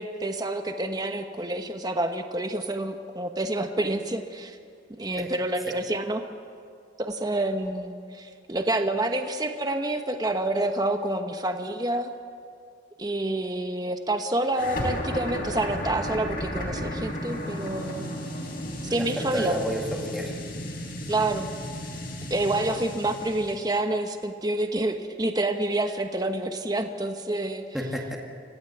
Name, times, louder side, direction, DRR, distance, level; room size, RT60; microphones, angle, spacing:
voice 1, 0.0-4.6 5.0-6.2 7.0-12.1 13.0-18.1 18.9-19.6 21.1-21.5 22.3-27.7, right 1 dB, 20° right, 6 dB, 1.1 m, -28 dB
sound 1, 14.5-23.7, equal, 50° left, 4.3 m, -34 dB
voice 2, 18.9-20.4 27.7-28.2, equal, ahead, -2 dB, 2.0 m, -31 dB
26.0 x 16.0 x 8.0 m, 2.3 s
head